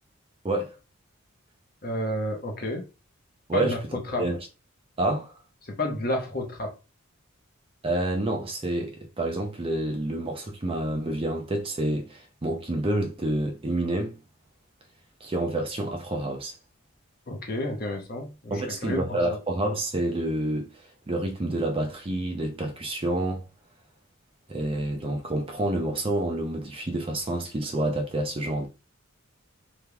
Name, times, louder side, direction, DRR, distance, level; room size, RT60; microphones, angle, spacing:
voice 1, 0.4-0.8 3.5-3.7 4.2-4.4 5.0-5.3 7.8-14.1 15.2-16.5 18.5-23.4 24.5-28.7, right 1 dB, 25° right, 0.5 m, -28 dB
voice 2, 1.8-2.9 3.5-4.3 5.6-6.7 17.3-19.4, left 1 dB, 45° left, 0.8 m, -31 dB
3.4 x 2.9 x 2.3 m
head